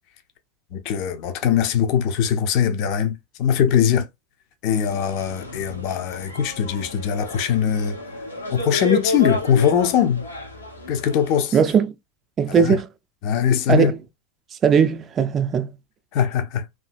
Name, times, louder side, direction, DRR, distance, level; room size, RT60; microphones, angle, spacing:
voice 1, 0.7-4.1 4.6-8.0 8.5-10.2 10.9-11.6 12.5-12.8 13.2-13.9 16.1-16.6, left 8 dB, 40° left, 0.5 m, -21 dB
sound 1, 4.7-11.4, left 1 dB, 85° left, 0.9 m, -32 dB
voice 2, 11.5-11.9 12.4-12.9 13.7-14.0 14.6-15.7, right 7 dB, 25° right, 0.4 m, -18 dB
2.7 x 2.6 x 2.5 m
figure-of-eight pair, 90°, 0 cm